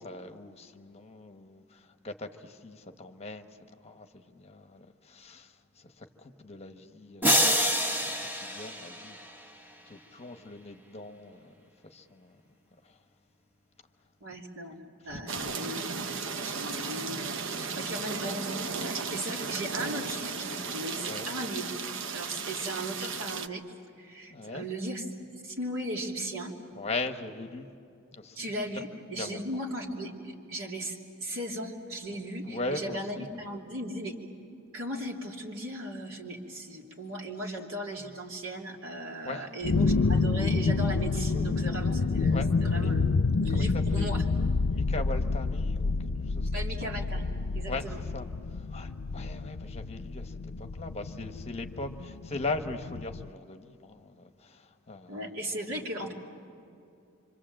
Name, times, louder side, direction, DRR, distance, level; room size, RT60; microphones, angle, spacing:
voice 1, 0.0-3.5 3.8-7.7 8.0-8.1 8.4-9.2 9.9-11.5 11.8-12.4 15.1-15.5 21.1-21.3 24.3-24.6 26.7-27.7 28.1-28.8 29.1-29.4 32.4-33.3 38.0-38.1 39.2-39.5 41.4-41.7 42.3-42.9 43.5-44.1 44.7-45.9 46.2-46.5 46.8-46.9 47.7-55.2, left 2 dB, 30° left, 7 dB, 1.1 m, -40 dB
sound 1, 7.2-9.6, equal, 10° right, 1.3 m, -27 dB
voice 2, 14.2-18.6 18.8-21.7 22.1-23.6 24.0-26.5 28.3-34.1 34.7-43.0 43.4-44.2 46.5-48.0 55.1-56.1, right 1 dB, 85° right, 0 dB, 3.1 m, -37 dB
sound 2, 15.3-23.5, right 5 dB, 65° right, 0.8 m, -35 dB
Viral Blue Thunder, 39.6-53.3, left 4 dB, 90° left, 0.5 m, -29 dB
26.0 x 25.5 x 7.7 m, 2.5 s
head